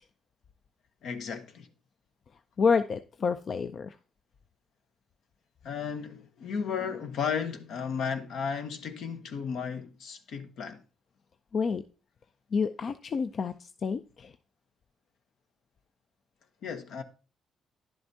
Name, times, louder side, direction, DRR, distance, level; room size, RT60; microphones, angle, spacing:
voice 1, 1.0-1.7 5.6-10.8 16.6-17.0, left 6 dB, 75° left, 1.0 m, -34 dB
voice 2, 2.6-3.9 11.5-11.8 12.5-13.5 13.8-14.3, left 5 dB, 50° left, 0.4 m, -28 dB
10.5 x 7.7 x 2.8 m
cardioid pair, 90°, 0 cm